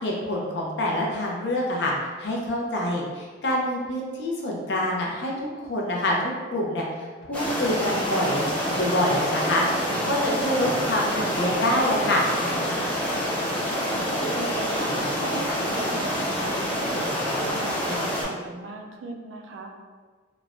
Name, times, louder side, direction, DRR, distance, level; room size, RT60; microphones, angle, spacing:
voice 1, 0.0-1.9 2.2-5.3 5.6-8.4 8.7-12.3, left 1 dB, 60° left, -2 dB, 0.5 m, -26 dB
sound 1, 7.3-18.2, equal, 5° left, 0.4 m, -27 dB
voice 2, 13.8-19.8, right 2 dB, 80° right, 2 dB, 0.4 m, -38 dB
3.0 x 2.1 x 2.4 m, 1.4 s
head